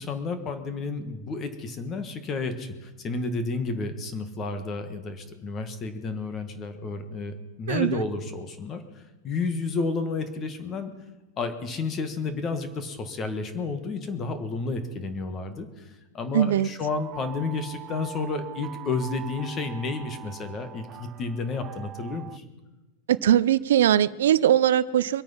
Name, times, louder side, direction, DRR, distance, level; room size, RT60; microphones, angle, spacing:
voice 1, 0.0-10.9 11.4-22.4, left 3 dB, 20° left, 9 dB, 1.5 m, -31 dB
voice 2, 7.7-8.0 16.3-16.7 23.1-25.2, right 11 dB, 80° right, 17 dB, 0.5 m, -21 dB
sound 1, 16.9-22.4, right 11 dB, 25° right, 0.4 m, -43 dB
24.0 x 8.8 x 5.7 m, 1.2 s
supercardioid pair, 170°, 0 cm